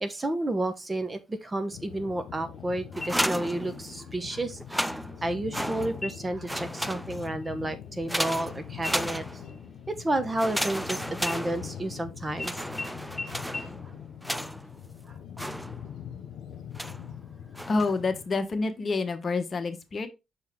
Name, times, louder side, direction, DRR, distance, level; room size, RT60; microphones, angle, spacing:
voice 1, 0.0-9.2 9.9-12.8 15.1-15.2, right 1 dB, 20° right, 1.0 m, -31 dB
sound 1, 1.7-18.3, left 9 dB, 80° left, 1.1 m, -43 dB
sound 2, 2.9-4.2 4.6-6.2 6.4-7.4 8.1-9.7 10.4-12.0 12.4-14.8 15.4-16.1 16.8-17.1 17.5-18.0, equal, ahead, 0.3 m, -34 dB
sound 3, 3.0-3.7 4.1-4.2 4.7-5.2 5.9-6.5 6.9-7.1 7.4-8.5 8.8-10.8 11.2-12.0 12.4-12.5 12.8-12.9 13.2-13.3 13.5-13.6, left 2 dB, 20° left, 2.7 m, -40 dB
voice 2, 17.7-20.1, left 3 dB, 40° left, 1.2 m, -28 dB
6.6 x 4.6 x 3.6 m
cardioid pair, 90°, 0 cm